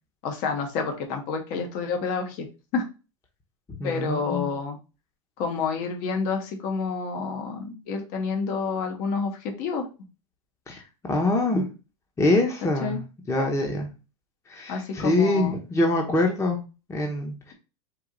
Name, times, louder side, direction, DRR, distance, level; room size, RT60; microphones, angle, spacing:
voice 1, 0.2-2.5 2.7-2.8 3.8-4.8 5.4-9.8 12.8-13.0 14.7-15.5, left 5 dB, 55° left, 4 dB, 1.3 m, -29 dB
voice 2, 3.7-4.5 10.7-10.8 11.1-11.7 12.2-13.0 13.3-13.9 14.5-16.6 16.9-17.5, left 2 dB, 15° left, 2 dB, 1.0 m, -24 dB
4.7 x 2.7 x 3.9 m, 0.31 s
supercardioid pair, 120°, 17 cm